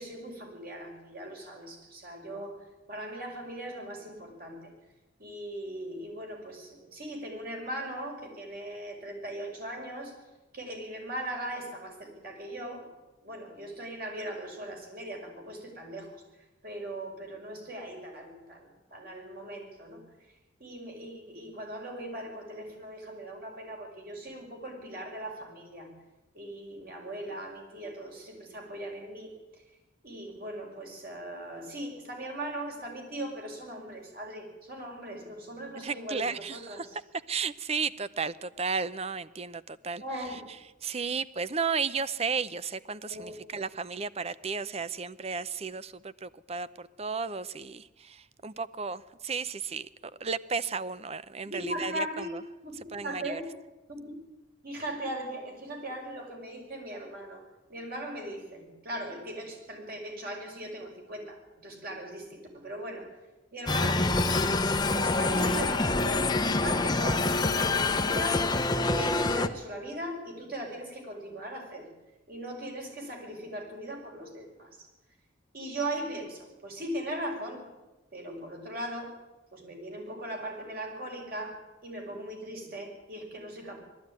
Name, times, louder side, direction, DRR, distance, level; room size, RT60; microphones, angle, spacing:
voice 1, 0.0-4.7 5.2-10.1 10.5-12.9 13.2-16.2 16.6-20.0 20.6-25.9 26.3-29.6 30.0-37.0 40.0-40.5 43.1-43.4 51.4-53.5 53.9-54.2 54.6-57.4 57.7-63.1 63.5-64.4 64.9-71.9 72.3-74.9 75.5-77.6 78.1-79.2 79.5-83.8, right 1 dB, 50° right, 1 dB, 5.7 m, -39 dB
voice 2, 35.8-36.9 37.3-40.0 40.8-49.9 50.2-52.1 52.9-53.4, right 5 dB, 30° right, 15 dB, 0.6 m, -33 dB
sound 1, 63.7-69.5, left 3 dB, 20° left, 0.8 m, -26 dB
19.5 x 14.0 x 9.6 m, 1.1 s
head